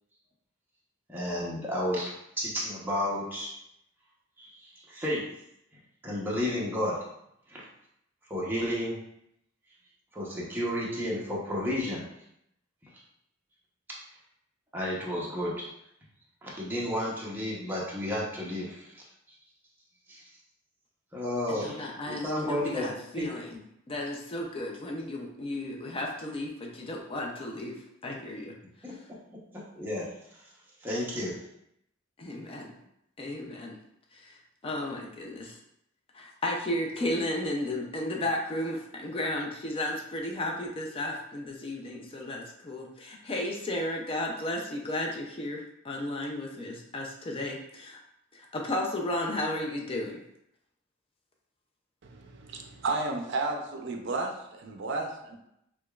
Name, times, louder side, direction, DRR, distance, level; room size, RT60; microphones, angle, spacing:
voice 1, 1.1-3.6 4.4-5.2 6.0-7.0 7.5-7.6 8.3-9.0 10.1-12.1 14.7-15.7 16.4-19.0 20.1-20.2 21.1-23.3 28.8-28.9 29.5-30.4 30.8-31.4, left 1 dB, 10° right, -5 dB, 0.8 m, -32 dB
voice 2, 21.5-23.6 23.9-27.7 28.0-28.5 32.2-32.7 33.2-33.8 34.1-35.6 36.1-48.0 48.3-50.2, left 1 dB, 30° left, 0 dB, 0.4 m, -34 dB
voice 3, 52.0-55.4, right 3 dB, 60° right, 2 dB, 0.5 m, -33 dB
4.9 x 2.3 x 2.3 m, 0.78 s
head